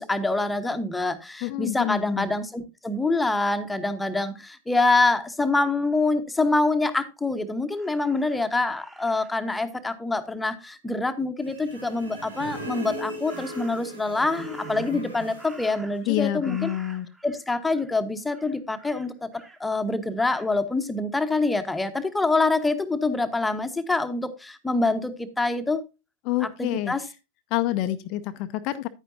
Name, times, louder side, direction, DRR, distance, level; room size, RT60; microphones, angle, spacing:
voice 1, 0.0-16.7 17.2-19.3 19.6-25.8 26.4-27.0, left 3 dB, 5° left, 1.2 m, -25 dB
voice 2, 1.4-2.3 16.1-17.1 26.2-27.1 27.5-28.9, left 14 dB, 40° left, 0.6 m, -27 dB
Crow, 7.7-9.5 13.2-14.0 14.3-16.1 16.4-17.4 17.7-18.0 18.3-19.6 20.2-20.5, right 2 dB, 10° right, 1.6 m, -49 dB
sound 1, 11.4-15.8, equal, 90° right, 4.3 m, -38 dB
10.5 x 9.2 x 2.7 m
figure-of-eight pair, 90°, 0 cm